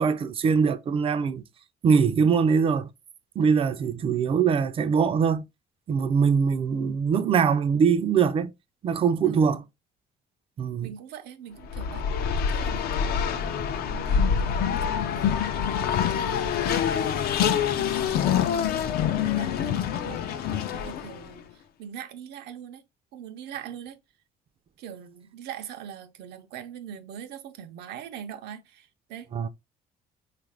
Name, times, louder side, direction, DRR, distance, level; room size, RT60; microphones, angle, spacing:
voice 1, 0.0-1.4 1.8-2.9 3.4-5.4 5.9-8.5 8.8-9.6 10.6-10.9 29.3-29.5, right 6 dB, 35° right, 0.4 m, -22 dB
voice 2, 9.2-9.6 10.8-12.0 12.5-15.6 16.1-17.3 17.7-18.6 19.1-22.8 23.1-24.0 24.8-29.3, right 9 dB, 80° right, 0.6 m, -42 dB
Race car auto racing, 11.6-21.3, left 8 dB, 65° left, 0.5 m, -26 dB
3.6 x 2.5 x 3.2 m
cardioid pair, 110°, 17 cm